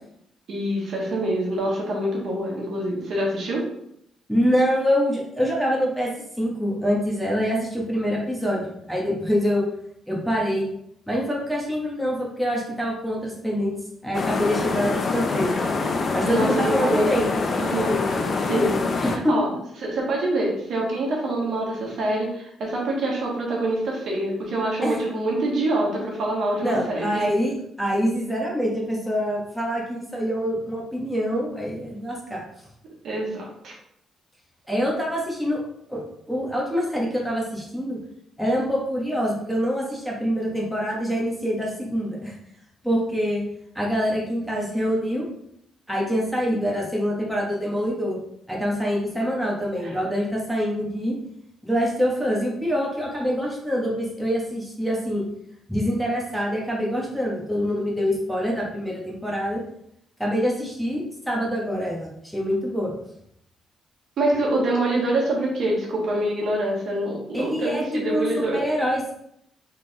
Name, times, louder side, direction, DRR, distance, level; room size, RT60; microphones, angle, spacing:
voice 1, 0.5-3.6 16.2-17.2 17.6-19.5 19.8-27.3 33.0-33.7 64.2-68.6, right 1 dB, 65° right, -2 dB, 1.6 m, -25 dB
voice 2, 4.3-9.6 10.1-10.6 11.1-13.7 14.0-15.5 16.1-17.3 19.0-19.4 24.8-25.0 26.6-32.4 34.7-35.6 35.9-36.0 36.3-38.0 38.4-42.3 42.8-43.4 43.7-45.2 45.9-48.2 48.5-51.2 51.6-55.2 55.7-59.6 60.2-62.9 67.3-69.1, equal, ahead, -3 dB, 1.3 m, -25 dB
sound 1, 14.1-19.2, left 4 dB, 45° left, 0.6 m, -25 dB
3.8 x 3.7 x 3.4 m, 0.74 s
cardioid pair, 90°, 0 cm